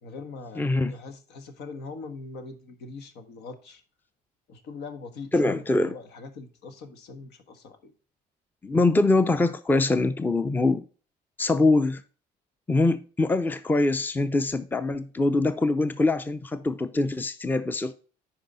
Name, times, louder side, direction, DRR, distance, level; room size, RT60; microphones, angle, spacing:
voice 1, 0.0-3.8 4.5-7.9, left 4 dB, 80° left, 1.5 m, -42 dB
voice 2, 0.6-0.9 5.3-5.9 8.6-10.8 11.4-12.0 12.7-17.9, left 2 dB, 10° left, 0.6 m, -23 dB
9.8 x 4.8 x 3.9 m
cardioid pair, 110°, 17 cm